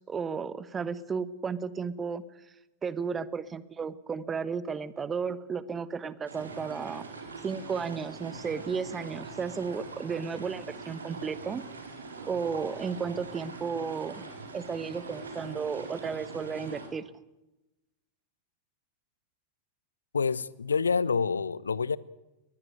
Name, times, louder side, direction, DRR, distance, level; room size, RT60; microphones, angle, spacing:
voice 1, 0.0-2.2 2.8-7.1 7.4-11.6 12.3-14.2 14.5-17.0, right 6 dB, 20° right, 1.2 m, -33 dB
sound 1, 6.3-16.9, right 4 dB, 75° right, 4.8 m, -43 dB
voice 2, 20.1-22.0, left 5 dB, 75° left, 0.8 m, -27 dB
21.0 x 20.0 x 9.4 m
figure-of-eight pair, 95°, 0 cm